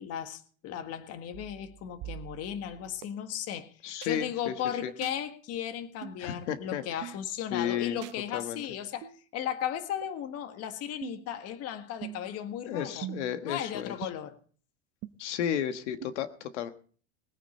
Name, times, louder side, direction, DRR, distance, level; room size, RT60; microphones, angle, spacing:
voice 1, 0.0-3.7 4.0-13.1 13.4-14.4, left 10 dB, 45° left, 1.7 m, -36 dB
sound 1, 1.3-3.0 4.0-4.1 5.0-5.2 6.0-6.2 7.0-7.2 8.0-8.2 9.0-9.2 10.0-10.1 11.0-11.3 12.0-12.4 13.0-13.4 14.0-14.1 15.0-15.1 16.0-16.1, right 14 dB, 45° right, 1.1 m, -42 dB
voice 2, 3.8-4.5 4.8-4.9 6.2-7.1 7.5-8.0 8.3-8.6 12.7-14.1 15.2-16.7, left 9 dB, 85° left, 1.5 m, -33 dB
21.0 x 9.3 x 4.3 m
supercardioid pair, 120°, 34 cm